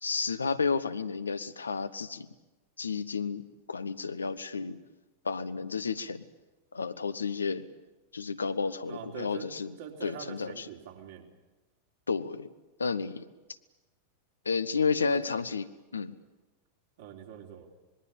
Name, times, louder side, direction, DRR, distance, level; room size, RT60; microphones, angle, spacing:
voice 1, 0.0-2.3 2.8-4.8 5.2-6.2 6.7-7.7 8.1-9.7 10.0-10.7 12.1-12.5 12.8-13.3 14.4-16.1, left 5 dB, 75° left, 11 dB, 1.0 m, -31 dB
voice 2, 8.8-9.5 9.8-11.3 15.0-15.4 17.0-17.7, right 8 dB, 55° right, 1 dB, 3.8 m, -43 dB
25.5 x 21.0 x 8.7 m, 1.2 s
figure-of-eight pair, 90°, 0 cm